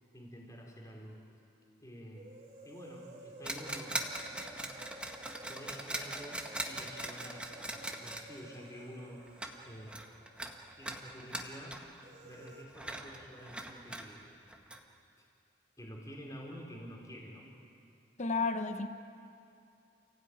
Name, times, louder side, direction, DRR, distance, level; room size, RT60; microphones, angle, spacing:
voice 1, 0.1-1.2 1.8-2.4 2.6-4.0 4.4-4.8 5.5-9.3 9.6-10.0 10.8-11.9 12.2-14.3 15.2-15.3 15.8-17.5, equal, 20° left, -2 dB, 4.3 m, -49 dB
sound 1, 2.2-11.0 11.3-11.4 12.0-12.6, right 2 dB, 35° right, 3.4 m, -53 dB
sound 2, 3.4-8.8 9.3-9.6 9.9-12.1 12.3-14.1 14.5-14.8, right 1 dB, 5° right, 1.7 m, -41 dB
voice 2, 18.2-18.9, left 4 dB, 40° left, 8 dB, 1.2 m, -32 dB
29.5 x 16.5 x 9.5 m, 2.6 s
head